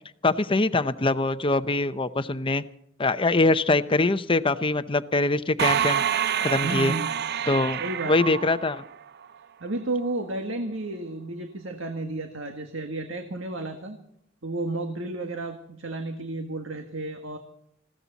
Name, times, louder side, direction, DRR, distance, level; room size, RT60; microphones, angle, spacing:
voice 1, 0.2-2.6 3.0-6.0 6.4-7.0 7.5-8.8, left 2 dB, 25° left, 12 dB, 0.7 m, -23 dB
sound 1, 5.6-9.3, right 9 dB, 55° right, 0.6 m, -27 dB
voice 2, 6.6-7.2 7.8-8.4 9.6-14.0 14.4-17.4, right 2 dB, 80° right, 5 dB, 1.8 m, -32 dB
20.0 x 16.0 x 4.1 m, 0.72 s
head